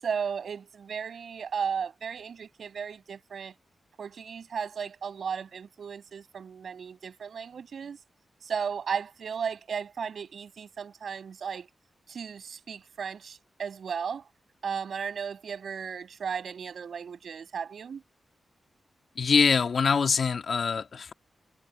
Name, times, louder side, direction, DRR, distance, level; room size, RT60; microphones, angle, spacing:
voice 1, 0.0-3.5 4.0-8.0 8.4-11.7 12.1-14.2 14.6-18.0, right 6 dB, 70° right, 6.5 m, -35 dB
voice 2, 19.2-21.1, left 5 dB, 60° left, 1.8 m, -24 dB
wide cardioid pair, 110°, 0 cm